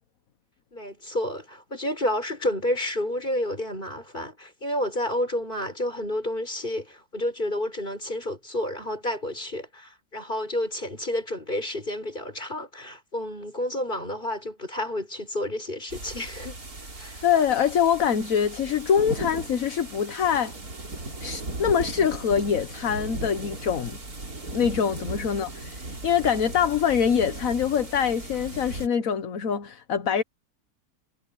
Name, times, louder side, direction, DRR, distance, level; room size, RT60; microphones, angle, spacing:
voice 1, 0.7-16.6 17.0-17.3, left 1 dB, 35° left, 7.2 m, -30 dB
sound 1, 15.9-28.9, right 2 dB, 90° right, 4.9 m, -37 dB
voice 2, 17.2-20.5 21.2-24.0 24.5-30.2, left 8 dB, 70° left, 1.5 m, -24 dB
omnidirectional pair, 1.5 m